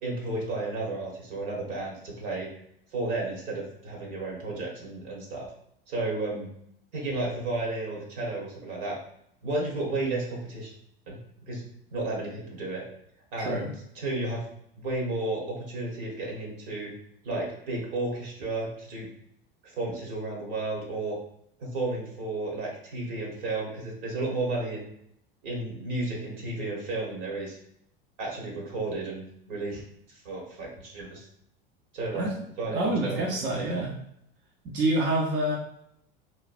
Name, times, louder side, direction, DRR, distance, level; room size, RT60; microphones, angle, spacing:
voice 1, 0.0-2.5 2.9-5.5 5.9-6.5 6.9-9.0 9.4-10.7 11.1-11.2 11.4-11.6 11.9-12.8 13.3-14.4 14.8-16.9 17.2-19.1 19.6-21.2 21.6-24.9 25.4-27.6 28.2-29.8 30.2-31.2 31.9-32.3 32.6-33.3 33.5-33.7, right 2 dB, 65° right, -2 dB, 1.3 m, -32 dB
voice 2, 13.4-13.7 32.1-32.3 32.7-33.9 34.6-35.6, right 1 dB, 40° right, -2 dB, 0.6 m, -27 dB
3.1 x 2.2 x 2.6 m, 0.72 s
hypercardioid pair, 85°, 29 cm